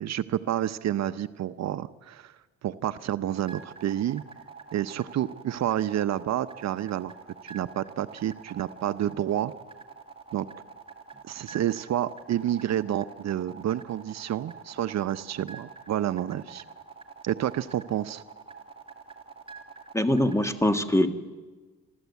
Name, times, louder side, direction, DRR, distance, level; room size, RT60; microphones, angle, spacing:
voice 1, 0.0-2.3 2.6-4.2 4.7-7.1 7.4-9.5 10.3-10.5 11.3-16.6 17.2-18.2, right 11 dB, 60° right, 13 dB, 0.7 m, -29 dB
sound 1, 3.3-20.5, right 5 dB, 20° right, 2.5 m, -46 dB
voice 2, 19.9-21.2, left 1 dB, 10° left, 9 dB, 1.5 m, -23 dB
27.0 x 13.0 x 8.2 m, 1.3 s
cardioid pair, 90°, 30 cm